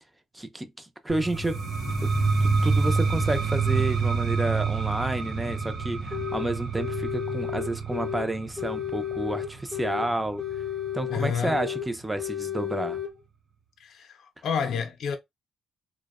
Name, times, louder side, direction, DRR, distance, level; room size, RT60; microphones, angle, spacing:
voice 1, 0.3-2.1 2.4-10.4 10.9-13.0, right 1 dB, 10° right, 0.4 m, -30 dB
sound 1, 1.1-10.9, right 4 dB, 75° right, 0.7 m, -27 dB
sound 2, 6.1-6.5 6.8-8.3 8.6-10.1 10.4-11.9 12.2-13.1, left 10 dB, 35° right, 0.8 m, -32 dB
voice 2, 11.1-11.6 13.8-14.2 14.4-15.2, left 6 dB, 65° left, 0.5 m, -29 dB
2.6 x 2.0 x 2.3 m
cardioid pair, 90°, 0 cm